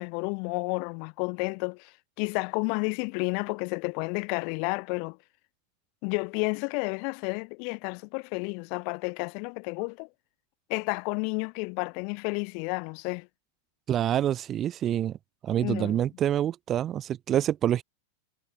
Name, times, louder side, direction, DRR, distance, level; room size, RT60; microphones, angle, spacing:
voice 1, 0.0-5.2 6.0-10.1 10.7-13.3 15.6-16.0, left 40 dB or more, 45° left, 4.2 m, -31 dB
voice 2, 13.9-15.2 15.4-17.8, right 11 dB, 30° right, 1.2 m, -26 dB
figure-of-eight pair, 90°, 0 cm